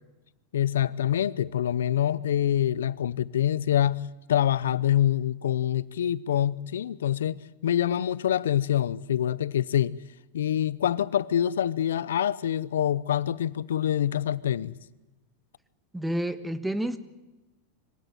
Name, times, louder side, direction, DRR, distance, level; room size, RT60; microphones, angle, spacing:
voice 1, 0.5-10.0 10.3-14.8, left 10 dB, 85° left, 0.7 m, -26 dB
voice 2, 15.9-17.0, right 1 dB, 5° right, 1.5 m, -29 dB
24.5 x 16.5 x 9.2 m
hypercardioid pair, 115°, 0 cm